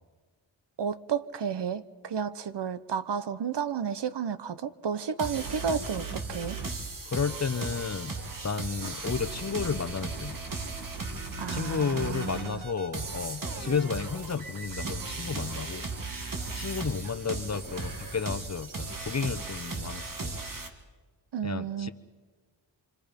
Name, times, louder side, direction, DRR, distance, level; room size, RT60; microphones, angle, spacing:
voice 1, 0.8-6.6 11.4-12.6 21.3-21.9, right 7 dB, 65° right, 14 dB, 0.9 m, -32 dB
sound 1, 5.2-20.7, right 3 dB, 45° right, 2.0 m, -36 dB
voice 2, 7.0-8.2 8.4-10.4 11.5-15.9 16.5-20.3 21.4-21.9, left 5 dB, 35° left, 11 dB, 0.9 m, -32 dB
28.0 x 25.0 x 5.2 m, 1.4 s
wide cardioid pair, 115°, 46 cm